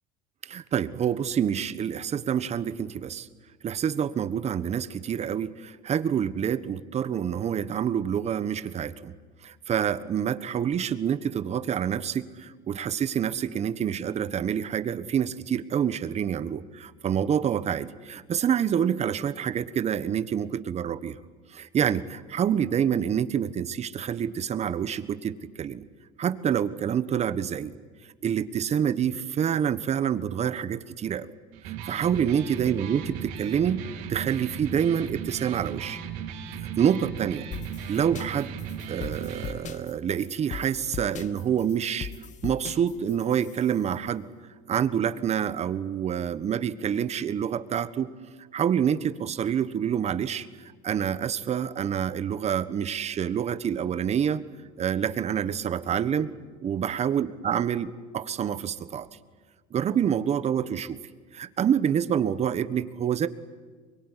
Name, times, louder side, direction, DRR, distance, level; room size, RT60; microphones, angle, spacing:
voice 1, 0.4-3.3 3.6-9.1 9.4-21.1 21.5-25.8 26.2-27.7 28.2-31.3 31.7-33.8 34.1-36.0 36.6-37.5 37.9-38.5 38.9-42.1 42.4-44.2 44.7-48.1 48.5-50.5 50.8-54.4 54.8-56.3 56.6-59.1 59.7-61.0 61.3-63.3, right 8 dB, 35° right, 13 dB, 1.4 m, -27 dB
Electric guitar, 31.5-39.5, right 8 dB, 75° right, 4.2 m, -36 dB
sound 1, 37.5-43.9, left 7 dB, 40° left, 1.5 m, -40 dB
23.5 x 22.5 x 10.0 m, 1.5 s
supercardioid pair, 105°, 19 cm